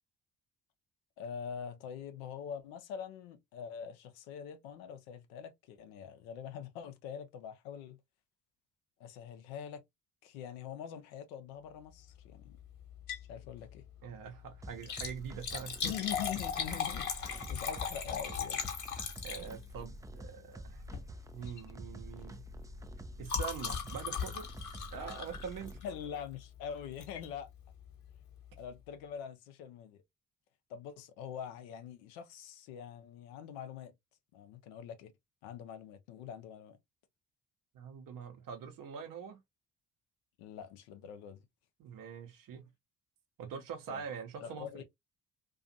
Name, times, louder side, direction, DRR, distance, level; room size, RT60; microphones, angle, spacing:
voice 1, 1.2-8.0 9.0-9.8 10.2-12.6 13.3-13.8 15.8-18.6 25.8-27.5 28.6-30.0 30.7-33.9 34.3-35.1 35.4-36.8 40.4-41.4 43.9-44.0 44.4-44.8, left 8 dB, 80° left, 0.6 m, -44 dB
Liquid, 12.9-13.3 13.7-13.8 14.7-19.8 20.8-21.1 21.4-21.7 22.0-26.1 27.0-27.3 27.8-27.9 28.1-28.2, left 7 dB, 50° left, 1.1 m, -38 dB
voice 2, 14.0-15.9 19.2-20.8 21.3-22.4 23.2-24.5 24.9-25.8 37.7-39.4 41.8-42.7 43.4-44.8, right 7 dB, 60° right, 0.8 m, -44 dB
sound 1, 14.6-25.8, right 2 dB, 10° right, 0.4 m, -48 dB
2.4 x 2.4 x 2.6 m
hypercardioid pair, 40°, 37 cm